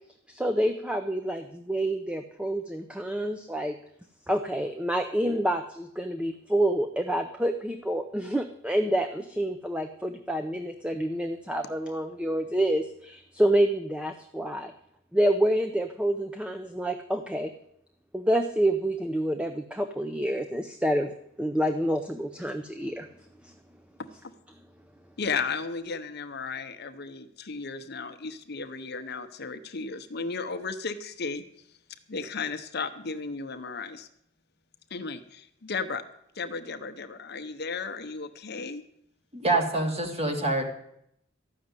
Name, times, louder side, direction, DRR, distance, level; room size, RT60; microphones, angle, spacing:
voice 1, 0.3-3.8 4.3-14.7 15.1-17.5 18.1-21.1 21.4-23.1 23.4-23.5, right 1 dB, 5° right, 6 dB, 0.6 m, -28 dB
voice 2, 25.2-31.4 32.1-34.1 34.9-36.0 36.3-38.8, left 4 dB, 50° left, 10 dB, 0.9 m, -34 dB
voice 3, 39.3-40.6, right 2 dB, 30° right, 3 dB, 2.3 m, -26 dB
13.5 x 6.4 x 9.6 m, 0.73 s
head